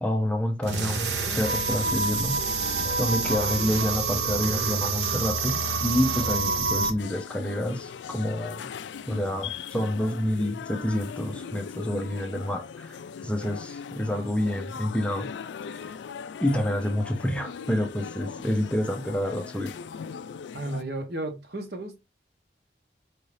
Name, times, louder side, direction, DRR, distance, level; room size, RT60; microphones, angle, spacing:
voice 1, 0.0-8.7 9.1-15.3 15.7-15.8 16.4-19.7, left 1 dB, 5° left, 0.4 m, -28 dB
sound 1, 0.6-6.9, right 4 dB, 85° right, 0.7 m, -27 dB
sound 2, 7.0-20.8, left 6 dB, 85° left, 0.3 m, -39 dB
voice 2, 20.5-22.0, right 1 dB, 65° right, 1.0 m, -34 dB
4.7 x 2.6 x 3.2 m
head